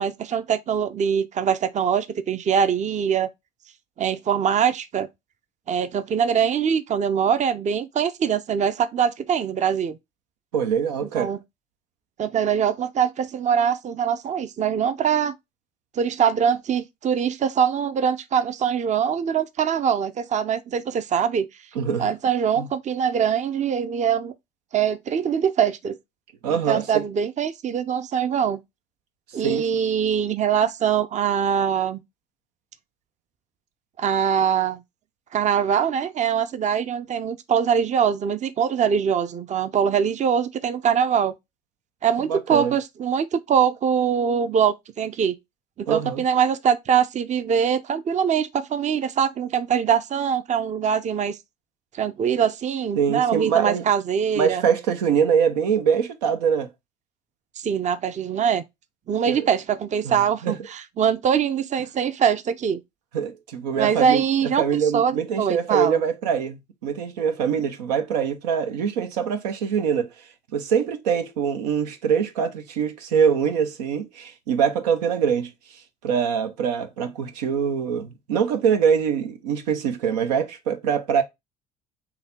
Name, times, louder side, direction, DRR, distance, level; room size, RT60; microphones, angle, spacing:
voice 1, 0.0-3.3 4.0-5.1 5.7-10.0 11.1-11.4 12.2-15.3 15.9-21.5 22.0-24.3 24.7-26.0 26.5-28.6 29.3-32.0 34.0-34.8 35.3-41.3 42.0-45.4 45.8-51.4 51.9-54.6 57.6-58.6 59.1-62.8 63.8-64.6 64.9-66.0, right 7 dB, 35° right, 0.5 m, -23 dB
voice 2, 10.5-11.3 21.8-22.1 22.6-22.7 26.4-27.0 29.4-29.7 42.3-42.7 45.9-46.2 53.0-53.8 54.4-56.7 59.3-59.5 60.0-60.6 63.1-64.2 64.6-70.1 70.5-81.2, right 7 dB, 85° right, 0.6 m, -24 dB
3.9 x 2.8 x 4.2 m
hypercardioid pair, 60°, 20 cm